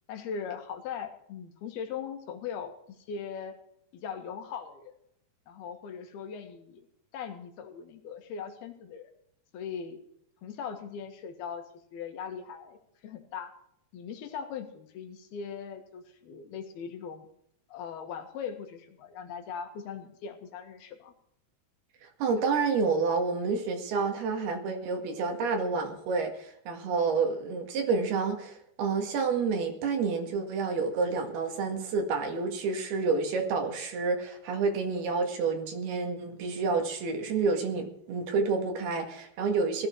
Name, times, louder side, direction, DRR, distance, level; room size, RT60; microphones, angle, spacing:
voice 1, 0.1-3.6 3.9-5.0 5.5-6.9 7.1-9.1 9.5-10.0 10.4-11.6 11.9-13.5 13.9-17.3 17.7-21.1, left 7 dB, 75° left, 6 dB, 3.6 m, -40 dB
voice 2, 22.0-39.9, right 4 dB, 75° right, 4 dB, 3.9 m, -29 dB
17.5 x 13.5 x 4.7 m, 0.70 s
omnidirectional pair, 4.6 m